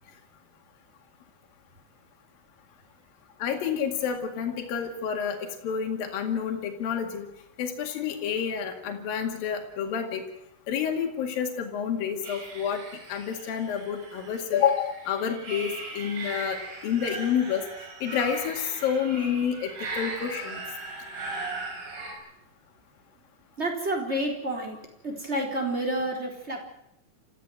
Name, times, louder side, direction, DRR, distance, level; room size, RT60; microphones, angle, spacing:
voice 1, 3.4-5.4 5.6-7.3 7.6-10.2 10.7-12.8 13.1-16.6 16.8-17.6 18.0-20.6, left 8 dB, 75° left, 3 dB, 3.9 m, -29 dB
sound 1, 12.2-22.1, right 2 dB, 75° right, 6.6 m, -38 dB
voice 2, 23.6-24.8 25.0-26.6, right 1 dB, 15° right, 1 dB, 3.9 m, -29 dB
28.0 x 15.0 x 7.8 m, 0.79 s
omnidirectional pair, 4.2 m